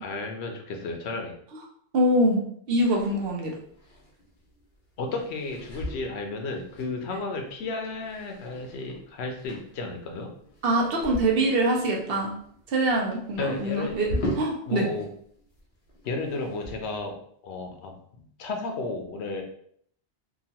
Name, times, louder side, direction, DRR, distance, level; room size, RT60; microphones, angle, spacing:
voice 1, 0.0-1.4 5.0-10.3 13.4-14.0 14.7-15.1 16.0-17.2 17.4-19.4, left 3 dB, 80° left, 3 dB, 0.9 m, -33 dB
voice 2, 1.9-2.4 2.7-3.5 10.6-12.3 12.7-14.1 14.4-14.9, right 1 dB, 65° right, 0 dB, 0.8 m, -24 dB
sound 1, 2.8-15.1 15.4-17.0, equal, 55° left, 1.0 m, -40 dB
2.9 x 2.4 x 2.8 m, 0.65 s
omnidirectional pair, 1.1 m